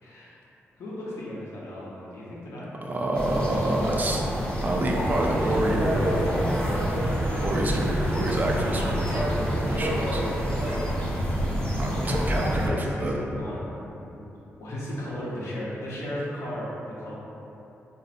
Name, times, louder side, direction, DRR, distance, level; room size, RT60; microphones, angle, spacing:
voice 1, 0.0-0.3 0.8-2.7 9.0-10.4 12.1-13.8 14.1-14.3 14.6-16.7 17.0-17.1, left 1 dB, 75° left, -7 dB, 0.8 m, -36 dB
voice 2, 2.8-4.3 4.6-6.2 7.3-9.0 9.7-10.2 11.8-13.2, right 1 dB, 35° right, -1 dB, 0.4 m, -28 dB
sound 1, 3.1-12.7, equal, 25° left, 0.8 m, -28 dB
sound 2, 5.1-10.9, right 1 dB, 55° right, 0.9 m, -31 dB
3.9 x 2.5 x 2.5 m, 3.0 s
cardioid pair, 70°, 5 cm